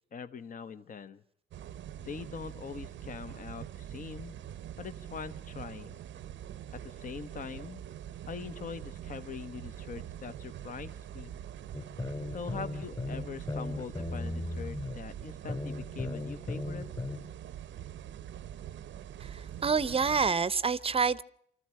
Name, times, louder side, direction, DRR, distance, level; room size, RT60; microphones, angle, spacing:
voice 1, 0.1-1.2 2.0-4.3 4.8-6.0 6.7-7.8 8.3-11.3 12.3-16.9, left 6 dB, 45° left, 1.0 m, -43 dB
sound 1, 1.5-20.3, right 10 dB, 70° right, 0.7 m, -44 dB
sound 2, 11.7-15.0 15.5-17.2, left 2 dB, 25° left, 3.5 m, -36 dB
voice 2, 19.2-21.2, right 5 dB, 30° right, 0.7 m, -28 dB
25.0 x 14.0 x 7.6 m
cardioid pair, 90°, 20 cm